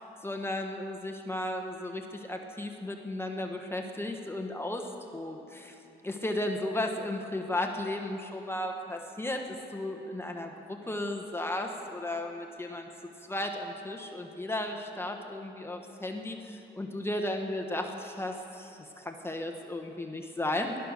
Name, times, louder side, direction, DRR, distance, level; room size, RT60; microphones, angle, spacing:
voice 1, 0.2-4.8 5.1-5.7 6.0-12.9 13.3-20.8, left 1 dB, 15° left, 2 dB, 1.1 m, -35 dB
17.0 x 12.0 x 6.5 m, 2.9 s
cardioid pair, 110°, 19 cm